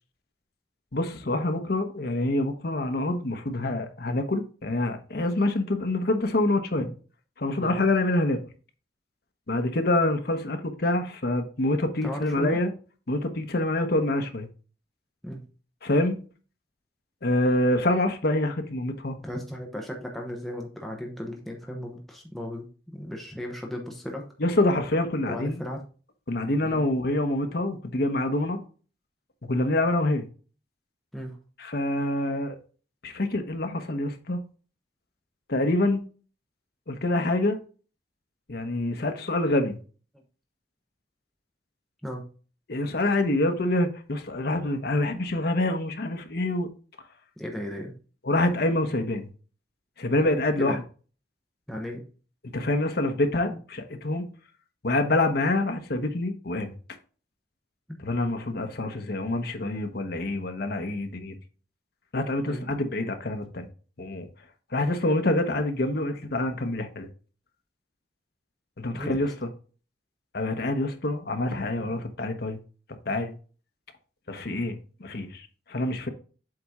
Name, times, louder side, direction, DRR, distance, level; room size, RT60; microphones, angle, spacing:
voice 1, 0.9-6.9 7.4-8.4 9.5-12.7 13.1-14.5 15.8-16.2 17.2-19.2 24.4-25.6 26.3-28.6 29.4-30.3 31.6-32.6 33.0-34.4 35.5-36.0 36.9-37.6 38.5-39.8 42.7-46.7 48.2-49.3 50.0-50.8 52.5-54.3 54.8-56.7 58.0-61.3 62.1-63.7 64.0-64.3 64.7-67.1 68.8-69.5 70.3-72.6 73.1-73.3 74.3-76.1, left 1 dB, 60° left, 1.0 m, -26 dB
voice 2, 12.0-12.6 15.2-15.4 19.2-22.7 22.9-24.2 25.3-25.8 26.6-26.8 31.1-31.4 42.0-42.3 47.4-47.9 50.6-50.8 51.7-52.0 62.4-62.6 68.9-69.2, equal, ahead, 0.9 m, -35 dB
7.7 x 4.2 x 3.7 m
head